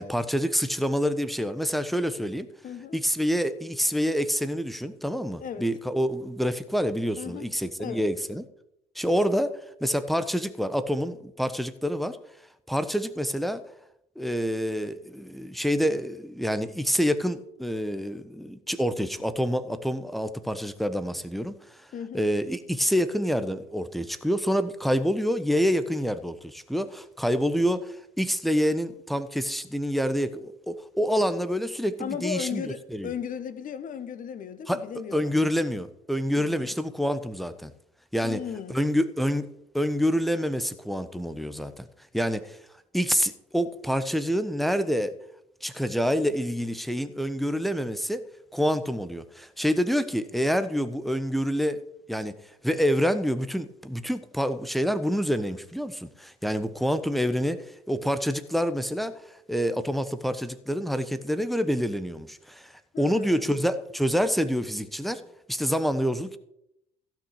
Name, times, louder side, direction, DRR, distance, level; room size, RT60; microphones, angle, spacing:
voice 1, 0.0-2.5 2.9-8.4 8.9-9.5 9.8-12.2 12.7-13.6 14.2-21.5 22.1-32.6 32.9-33.1 34.7-37.7 38.1-38.4 38.7-39.5 39.7-41.9 42.1-42.6 42.9-45.1 45.6-48.2 48.5-51.8 52.1-52.3 52.6-65.2 65.5-66.4, equal, ahead, 1.2 m, -27 dB
voice 2, 2.6-3.0 5.3-5.7 7.2-7.5 7.8-8.0 21.9-22.3 32.0-35.4 36.4-36.8 38.2-38.7 62.9-63.6, left 8 dB, 45° left, 1.3 m, -36 dB
15.5 x 6.0 x 6.6 m
figure-of-eight pair, 50°, 19 cm